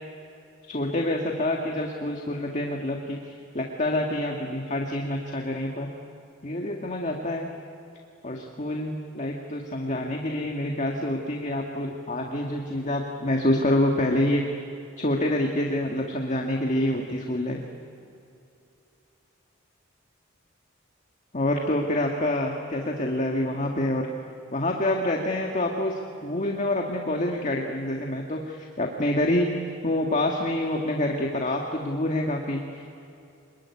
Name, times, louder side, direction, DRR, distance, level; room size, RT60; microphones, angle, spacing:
voice 1, 0.7-5.9 6.4-7.5 8.2-14.4 15.0-17.6 21.3-24.1 24.5-29.5 29.8-33.0, left 1 dB, 35° left, 1 dB, 1.8 m, -27 dB
25.5 x 22.0 x 9.7 m, 2.8 s
head